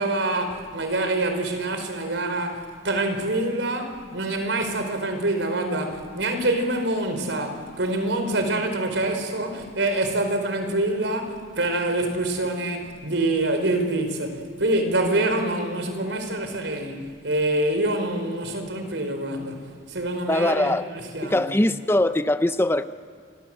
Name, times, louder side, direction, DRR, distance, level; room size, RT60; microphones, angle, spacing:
voice 1, 0.0-21.5, right 2 dB, 75° right, 6 dB, 4.6 m, -26 dB
voice 2, 20.3-20.9 21.2-22.8, left 1 dB, 15° left, 11 dB, 0.6 m, -21 dB
29.0 x 25.0 x 7.8 m, 2.1 s
head